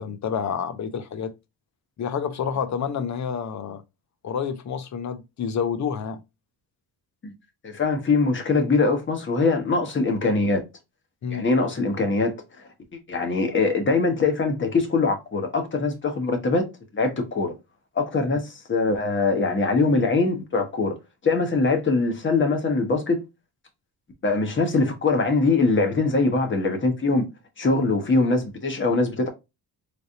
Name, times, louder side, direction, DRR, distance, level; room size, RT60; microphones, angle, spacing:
voice 1, 0.0-1.3 2.0-3.8 4.2-6.2 11.2-11.5 18.3-18.4, left 7 dB, 45° left, 0.7 m, -29 dB
voice 2, 7.6-10.6 11.3-12.3 13.1-16.6 16.9-17.5 17.9-20.9 21.2-23.2 24.2-27.3 27.6-29.3, left 3 dB, 30° left, 1.3 m, -22 dB
3.9 x 3.4 x 2.6 m
cardioid pair, 110°, 41 cm